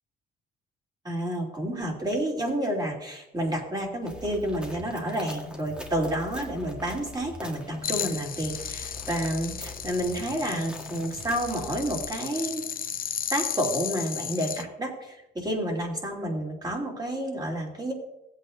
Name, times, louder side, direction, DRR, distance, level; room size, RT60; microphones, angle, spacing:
voice 1, 1.0-12.7 13.3-17.9, right 1 dB, 20° right, -1 dB, 3.0 m, -30 dB
sound 1, 4.1-12.1, left 2 dB, 25° left, 1.1 m, -44 dB
sound 2, 4.1-11.7, equal, 5° right, 1.5 m, -45 dB
sound 3, 7.8-14.6, left 8 dB, 45° left, 0.7 m, -34 dB
16.5 x 8.2 x 2.6 m, 0.89 s
cardioid pair, 90°, 20 cm